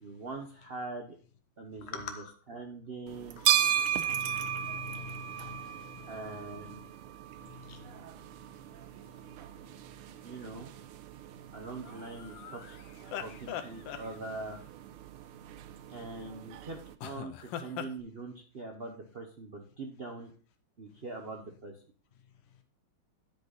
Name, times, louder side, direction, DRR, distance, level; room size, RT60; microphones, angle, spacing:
voice 1, 0.0-1.2 1.6-3.5 6.1-6.9 10.2-10.7 11.5-12.8 13.1-14.6 15.9-20.3 20.8-21.8, right 3 dB, 65° right, 0.5 m, -43 dB
voice 2, 1.9-2.3 3.4-3.5 4.1-5.6 7.7-7.8, left 7 dB, 45° left, 0.8 m, -43 dB
sound 1, 3.1-16.9, right 10 dB, 85° right, 1.5 m, -36 dB
sound 2, 11.8-14.6 17.0-17.9, left 10 dB, 70° left, 1.3 m, -42 dB
10.5 x 5.3 x 4.0 m
omnidirectional pair, 2.4 m